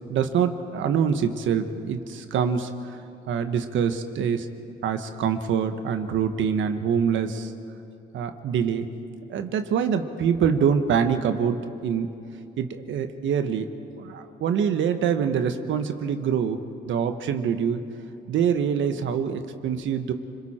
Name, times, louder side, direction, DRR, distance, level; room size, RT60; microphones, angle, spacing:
voice 1, 0.1-3.0 3.3-4.5 4.8-7.5 8.1-8.9 9.3-12.1 12.6-13.7 14.0-16.6 16.9-17.8 18.3-20.1, right 7 dB, 75° right, 8 dB, 1.4 m, -25 dB
30.0 x 22.0 x 4.5 m, 2.7 s
cardioid pair, 90°, 20 cm